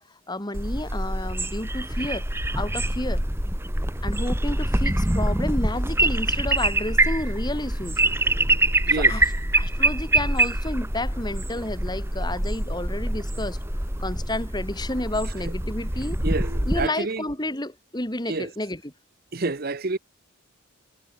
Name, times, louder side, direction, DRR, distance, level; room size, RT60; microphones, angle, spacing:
voice 1, 0.0-2.2 2.6-3.2 4.0-8.0 8.9-13.6 14.0-16.2 16.7-18.9, left 1 dB, 20° left, 3.5 m, -31 dB
sound 1, 0.5-16.9, right 1 dB, 10° right, 2.7 m, -25 dB
voice 2, 16.2-17.2 18.3-18.5 19.3-20.0, right 3 dB, 45° right, 1.0 m, -28 dB
head